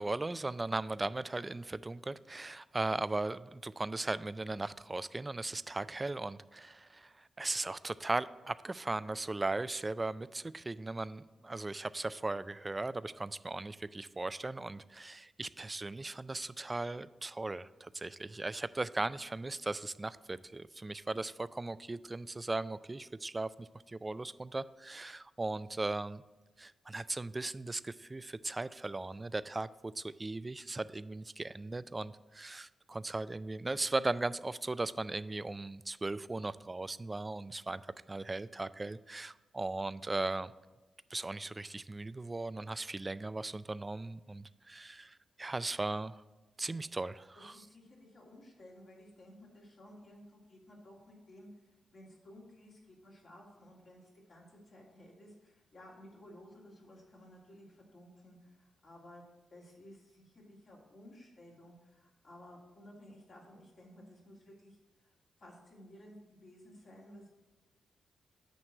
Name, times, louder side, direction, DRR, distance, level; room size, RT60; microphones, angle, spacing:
voice 1, 0.0-26.2 26.6-37.8 38.1-40.5 41.1-46.2 46.6-47.6, right 2 dB, 30° right, 16 dB, 0.3 m, -38 dB
voice 2, 47.5-59.2 59.5-64.8 65.0-65.1 65.4-67.3, left 1 dB, 55° left, -3 dB, 2.5 m, -55 dB
8.8 x 3.2 x 6.4 m, 1.1 s
supercardioid pair, 50°, 0 cm